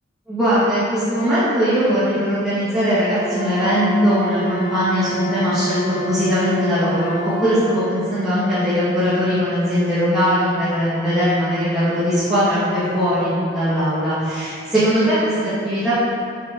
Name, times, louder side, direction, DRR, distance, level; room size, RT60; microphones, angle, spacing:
voice 1, 0.3-5.8 6.1-15.9, equal, ahead, -15 dB, 1.7 m, -20 dB
Wind instrument woodwind instrument, 3.2-7.8, right 2 dB, 25° left, 1.2 m, -28 dB
7.3 x 5.5 x 3.6 m, 2.5 s
head